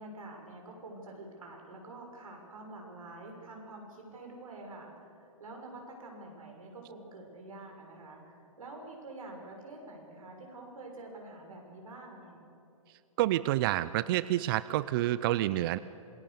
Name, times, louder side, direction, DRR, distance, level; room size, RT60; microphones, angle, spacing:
voice 1, 0.0-12.4, right 2 dB, 80° right, 0 dB, 6.4 m, -47 dB
voice 2, 13.2-15.8, right 15 dB, 40° right, 16 dB, 0.5 m, -28 dB
27.0 x 20.5 x 6.9 m, 2.7 s
hypercardioid pair, 125°, 18 cm